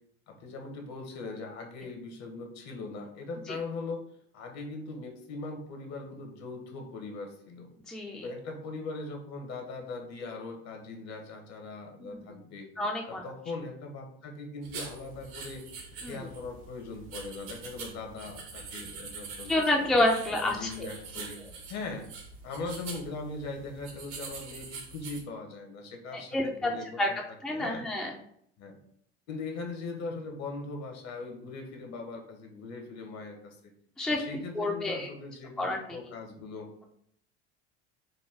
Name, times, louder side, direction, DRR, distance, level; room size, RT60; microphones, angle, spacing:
voice 1, 0.3-4.0 4.3-7.7 8.2-12.7 13.1-15.7 16.1-19.9 20.4-21.4 21.7-22.1 22.4-27.2 27.5-27.8 28.6-28.8 29.3-33.6 34.1-36.7, left 3 dB, 50° left, 3 dB, 1.1 m, -40 dB
voice 2, 7.9-8.2 12.0-12.2 12.8-13.2 16.0-16.2 19.5-20.7 26.1-26.7 27.0-27.1 27.4-28.1 34.0-34.2 34.5-35.1 35.6-35.8, left 1 dB, ahead, 0 dB, 0.5 m, -28 dB
sound 1, 14.6-25.2, right 4 dB, 70° right, 1.2 m, -44 dB
4.2 x 2.2 x 3.4 m, 0.68 s
hypercardioid pair, 75°, 34 cm